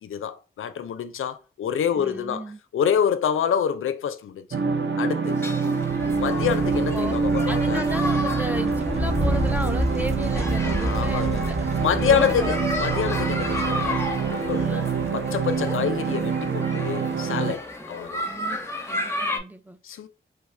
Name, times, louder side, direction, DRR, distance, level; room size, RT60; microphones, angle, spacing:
voice 1, 0.0-2.4 2.7-4.5 5.0-5.4 6.2-7.8 10.7-11.4 11.8-18.3 19.8-20.1, left 8 dB, 75° left, 0.4 m, -27 dB
voice 2, 1.9-2.6 6.7-7.2 7.5-11.7 12.0-12.6 14.7-14.9 18.3-18.6 18.9-19.8, right 1 dB, 10° right, 0.4 m, -34 dB
sound 1, 4.5-17.6, right 5 dB, 60° right, 0.5 m, -26 dB
sound 2, 5.3-19.4, left 1 dB, 10° left, 0.9 m, -33 dB
sound 3, 5.8-16.4, equal, 30° right, 1.1 m, -31 dB
3.2 x 2.3 x 3.2 m
cardioid pair, 45°, 21 cm